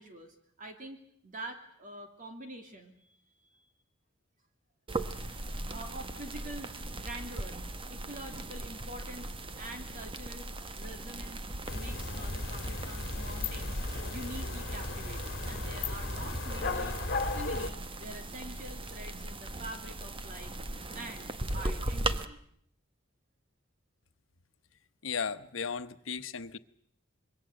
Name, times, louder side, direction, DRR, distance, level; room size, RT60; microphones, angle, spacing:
voice 1, 0.0-3.1 3.5-3.7 5.2-7.6 7.9-10.5 10.8-11.4 11.7-20.6 20.9-22.4, right 1 dB, 45° right, 4 dB, 2.8 m, -46 dB
sound 1, 4.9-22.2, right 2 dB, 25° right, 1.2 m, -39 dB
sound 2, 11.7-17.7, left 2 dB, 55° left, 1.9 m, -35 dB
voice 2, 25.0-26.6, left 6 dB, 75° left, 10 dB, 1.1 m, -35 dB
26.0 x 22.5 x 7.8 m, 0.65 s
head